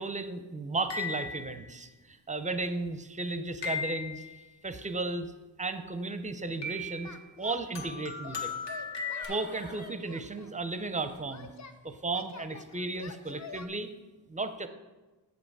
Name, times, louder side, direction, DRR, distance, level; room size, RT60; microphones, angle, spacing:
voice 1, 0.0-4.3 4.6-5.3 5.6-7.1 7.4-8.5 9.3-11.5 11.8-13.9 14.3-14.7, right 3 dB, 15° right, 9 dB, 0.5 m, -34 dB
sound 1, 0.9-1.7 3.6-4.3 6.6-7.2 7.8-9.3, left 5 dB, 70° left, 1.6 m, -36 dB
Singing, 7.0-7.9 8.2-9.5 10.1-11.8 12.1-13.7, left 5 dB, 40° left, 0.6 m, -47 dB
sound 2, 8.4-11.5 11.9-12.0, left 3 dB, 20° left, 1.0 m, -49 dB
7.9 x 6.9 x 4.7 m, 1.2 s
wide cardioid pair, 130°, 45 cm